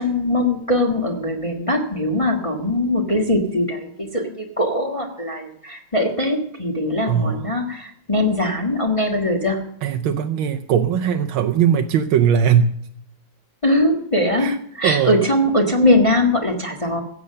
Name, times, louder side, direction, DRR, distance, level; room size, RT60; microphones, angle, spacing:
voice 1, 0.0-9.6 13.6-14.5 14.8-17.0, left 1 dB, 15° left, 1 dB, 1.5 m, -21 dB
voice 2, 7.1-7.5 9.8-12.8 14.4-14.6 14.8-15.2, right 8 dB, 85° right, 6 dB, 1.6 m, -19 dB
15.5 x 7.7 x 6.7 m, 0.66 s
omnidirectional pair, 2.2 m